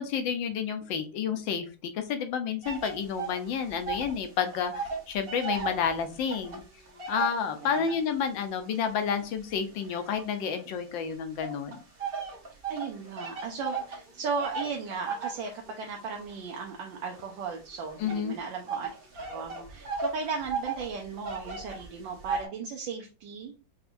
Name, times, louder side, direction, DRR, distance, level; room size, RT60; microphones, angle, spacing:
voice 1, 0.0-4.7 5.1-6.6 7.1-11.8 18.0-18.4, left 7 dB, 75° left, 8 dB, 1.4 m, -30 dB
sound 1, 2.6-4.2 4.5-8.1 8.7-10.8 11.4-22.5, right 4 dB, 35° right, 1.1 m, -36 dB
voice 2, 7.6-8.0 12.5-23.6, right 5 dB, 75° right, 1 dB, 1.4 m, -36 dB
5.7 x 2.8 x 2.6 m, 0.34 s
omnidirectional pair, 2.1 m